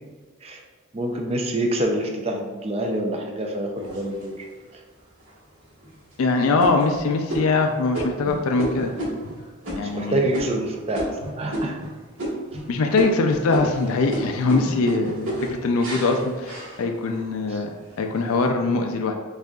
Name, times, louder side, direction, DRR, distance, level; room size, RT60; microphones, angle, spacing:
voice 1, 0.9-4.4 9.8-11.8 16.0-16.1 17.5-17.6, right 1 dB, 25° right, 2 dB, 0.4 m, -27 dB
sound 1, 3.8-4.6 5.2-5.3 5.8-6.1 6.6-11.9 12.2-12.7 12.9-17.3 17.7-18.3, right 1 dB, 70° right, 1.5 m, -31 dB
voice 2, 6.2-8.9 9.8-10.2 12.7-19.1, left 3 dB, 75° left, 4 dB, 0.4 m, -22 dB
6.3 x 2.4 x 2.3 m, 1.4 s
head